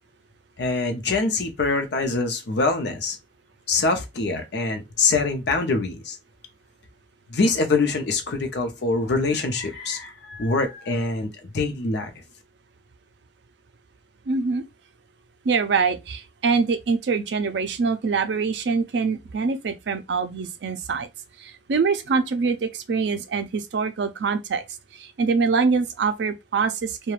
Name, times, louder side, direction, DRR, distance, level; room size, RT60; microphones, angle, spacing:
voice 1, 0.6-3.2 3.7-6.2 7.3-12.1, left 3 dB, 65° left, 0.6 m, -24 dB
voice 2, 14.3-14.6 15.5-21.1 21.4-24.6 25.2-27.1, right 5 dB, 65° right, 0.4 m, -24 dB
2.4 x 2.2 x 3.0 m
head